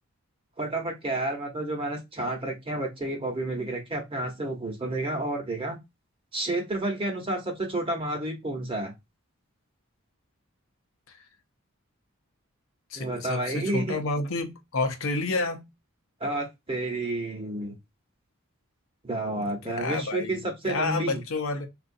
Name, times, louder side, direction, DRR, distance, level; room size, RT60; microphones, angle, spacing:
voice 1, 0.6-5.8 6.3-8.9 12.9-14.0 16.2-17.7 19.0-21.2, right 2 dB, 25° right, 0.9 m, -30 dB
voice 2, 12.9-15.7 19.4-21.7, left 3 dB, 70° left, 0.6 m, -30 dB
3.8 x 2.4 x 2.6 m
head